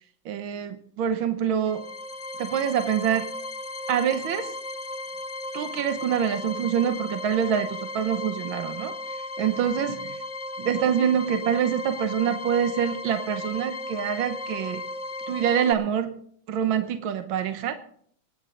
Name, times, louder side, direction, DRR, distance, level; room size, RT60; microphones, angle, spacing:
voice 1, 0.2-1.8 2.4-3.3 3.9-4.5 5.5-8.9 9.4-10.2 10.6-14.8 15.3-16.2 16.5-17.8, right 8 dB, 75° right, 8 dB, 1.7 m, -25 dB
sound 1, 1.5-15.7, left 2 dB, 55° left, 0.3 m, -35 dB
25.5 x 9.8 x 3.9 m, 0.63 s
omnidirectional pair, 2.2 m